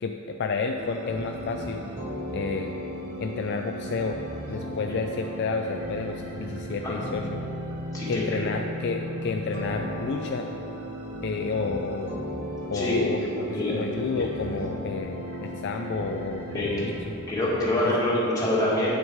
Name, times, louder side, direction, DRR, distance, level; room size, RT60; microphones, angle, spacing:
voice 1, 0.0-1.8 2.3-2.8 3.2-4.2 4.5-7.4 8.1-10.5 11.2-12.1 12.7-13.2 13.5-17.1, left 4 dB, 50° left, 4 dB, 0.3 m, -30 dB
sound 1, 0.8-17.0, equal, 65° right, 1.3 m, -36 dB
voice 2, 7.9-8.4 12.7-13.1 13.5-13.7 16.5-16.7 17.3-19.0, left 1 dB, 15° left, -7 dB, 1.9 m, -25 dB
8.8 x 6.2 x 4.7 m, 3.0 s
head